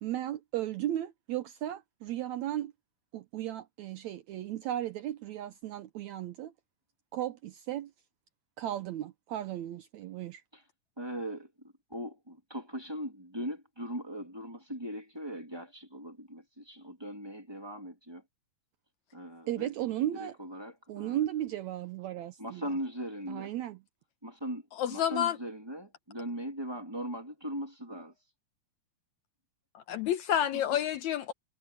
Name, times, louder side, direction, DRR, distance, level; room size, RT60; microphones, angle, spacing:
voice 1, 0.0-2.7 3.1-6.5 7.1-7.9 8.6-10.4 19.5-20.4 20.9-22.8 23.3-23.8, right 12 dB, 75° right, 1.8 m, -35 dB
voice 2, 11.0-11.5 11.9-18.2 19.1-19.7 20.2-21.2 22.4-23.5 24.2-28.1 30.5-30.6, equal, 10° right, 1.8 m, -39 dB
voice 3, 24.7-25.4 29.8-31.3, left 10 dB, 70° left, 2.0 m, -29 dB
omnidirectional pair, 3.9 m